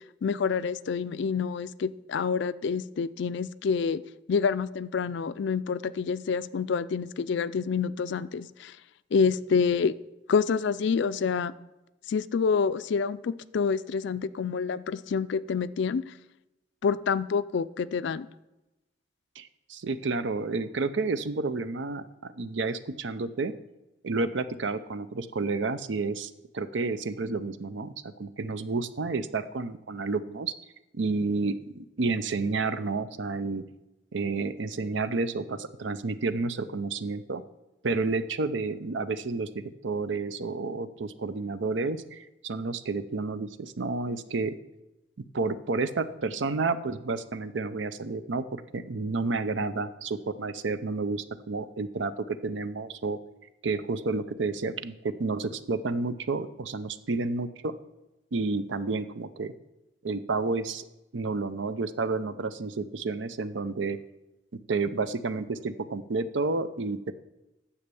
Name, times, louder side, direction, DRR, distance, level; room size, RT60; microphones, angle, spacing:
voice 1, 0.2-4.0 4.3-8.8 9.1-9.9 10.3-11.5 12.1-16.0 16.8-18.3, left 5 dB, 70° left, 15 dB, 0.4 m, -27 dB
voice 2, 19.4-23.5 24.0-27.9 28.2-30.5 30.9-33.6 34.1-37.4 37.8-44.6 45.3-53.2 53.6-57.7 58.3-59.5 60.0-60.8 61.1-64.0 64.7-67.1, right 3 dB, 75° right, 13 dB, 0.6 m, -30 dB
9.9 x 7.2 x 6.9 m, 0.99 s
head